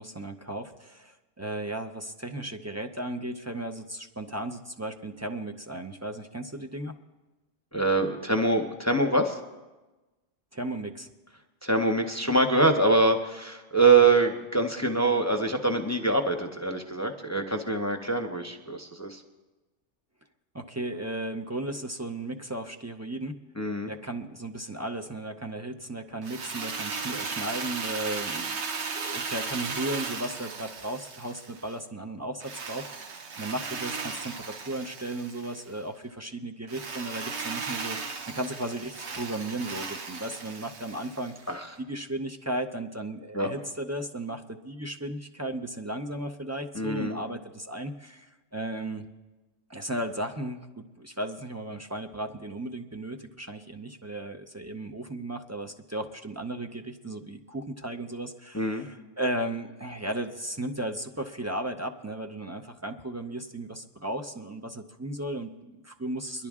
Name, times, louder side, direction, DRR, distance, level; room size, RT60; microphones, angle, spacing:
voice 1, 0.0-6.9 10.5-11.1 20.5-23.4 23.8-28.7 28.9-34.4 34.7-41.5 41.8-49.0 49.7-66.5, right 1 dB, 25° right, 5 dB, 0.4 m, -35 dB
voice 2, 7.7-9.4 11.6-19.2 23.6-23.9 41.5-41.7 43.3-43.5 46.7-47.2 58.5-58.9, right 3 dB, 15° left, 4 dB, 0.7 m, -24 dB
Drill, 26.2-31.8 32.4-35.7 36.7-41.5, right 4 dB, 65° right, 1.1 m, -36 dB
23.0 x 11.5 x 3.6 m, 1.1 s
omnidirectional pair, 1.3 m